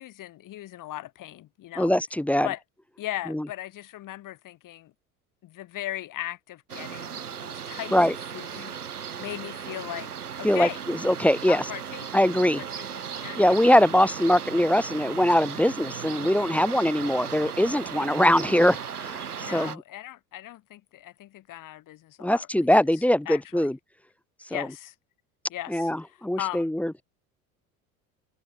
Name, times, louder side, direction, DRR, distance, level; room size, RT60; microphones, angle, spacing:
voice 1, 0.0-1.9 2.4-2.6 3.0-4.9 5.4-10.1 10.4-10.8 11.5-12.2 12.6-13.8 19.4-23.7 24.5-24.9 25.5-26.7, left 14 dB, 45° left, 5.5 m, -38 dB
voice 2, 1.8-2.5 3.3-3.4 7.9-8.1 10.4-11.6 12.1-12.6 13.4-19.8 22.2-23.8 24.5-24.7 25.7-26.9, left 1 dB, 5° left, 0.8 m, -22 dB
sound 1, 6.7-19.8, right 7 dB, 85° right, 1.0 m, -36 dB
figure-of-eight pair, 70°, 45 cm